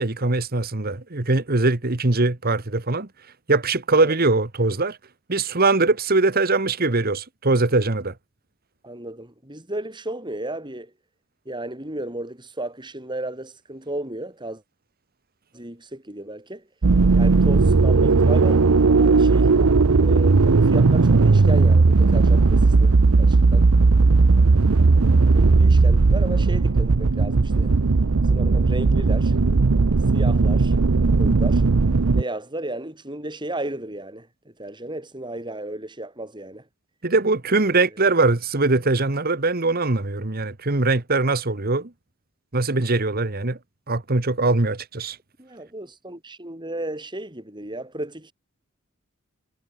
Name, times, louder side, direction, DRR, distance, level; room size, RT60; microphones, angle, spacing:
voice 1, 0.0-3.1 3.5-5.0 5.3-8.1 37.0-41.9 42.5-43.6 43.9-45.2, right 3 dB, 45° right, 1.4 m, -21 dB
voice 2, 8.8-10.9 11.5-14.6 15.5-16.6 17.1-19.5 20.0-23.7 25.2-27.7 28.2-29.4 30.1-31.6 32.1-34.3 34.6-36.6 37.5-38.1 45.4-48.3, right 1 dB, 20° right, 6.0 m, -34 dB
sound 1, 16.8-32.2, right 3 dB, 75° right, 0.7 m, -17 dB
head